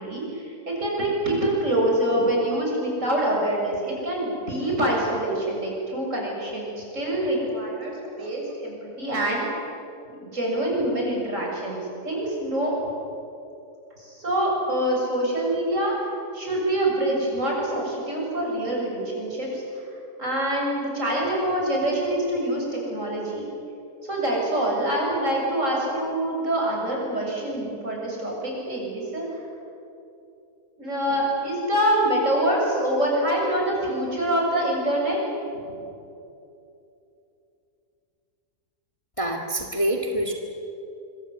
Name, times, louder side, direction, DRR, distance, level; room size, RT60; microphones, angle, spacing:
voice 1, 0.0-9.4 10.1-12.7 14.0-15.9 16.3-19.6 20.2-23.5 24.1-29.4 30.8-35.2 35.7-35.8, right 1 dB, 45° right, -2 dB, 7.6 m, -25 dB
voice 2, 39.2-40.3, right 1 dB, 20° left, 1 dB, 1.9 m, -26 dB
25.0 x 24.5 x 8.2 m, 2.7 s
omnidirectional pair, 1.8 m